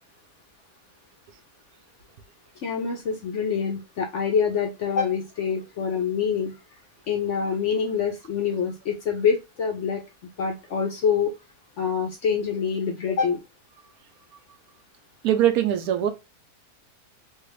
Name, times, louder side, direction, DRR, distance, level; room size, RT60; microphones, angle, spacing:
voice 1, 2.6-6.6 7.1-10.0 10.4-11.3 11.8-13.4, left 6 dB, 60° left, 0.8 m, -25 dB
voice 2, 15.2-16.1, right 11 dB, 70° right, 1.1 m, -21 dB
3.3 x 2.4 x 3.1 m
omnidirectional pair, 1.7 m